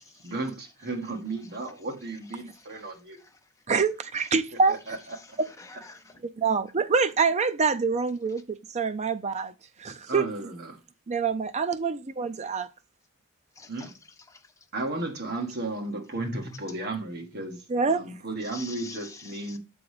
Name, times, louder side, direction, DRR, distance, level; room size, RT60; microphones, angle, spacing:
voice 1, 0.2-3.2 4.7-5.0 10.1-10.7 13.7-13.9 14.7-19.6, right 2 dB, 50° right, 1.6 m, -34 dB
voice 2, 2.2-3.6 4.2-4.3 4.9-6.2 13.5-13.9 14.3-14.7 18.4-19.6, left 4 dB, 15° left, 0.8 m, -48 dB
voice 3, 3.7-5.0 6.4-10.3 11.1-12.7 17.7-18.0, right 5 dB, 30° right, 0.5 m, -26 dB
7.0 x 3.9 x 4.8 m
head